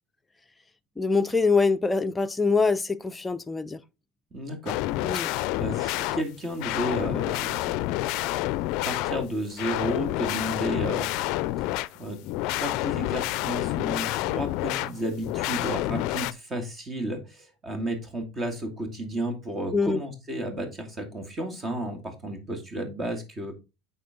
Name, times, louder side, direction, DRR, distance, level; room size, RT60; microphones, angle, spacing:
voice 1, 1.0-3.8 5.0-5.3 19.7-20.0, left 4 dB, 15° left, 0.6 m, -24 dB
voice 2, 4.3-4.8 5.3-7.8 8.8-11.1 11.6-11.7 12.0-12.2 12.5-23.5, right 1 dB, 30° right, 2.4 m, -32 dB
sound 1, 4.7-16.3, left 16 dB, 65° left, 0.4 m, -29 dB
8.5 x 4.6 x 3.8 m
supercardioid pair, 100°, 0 cm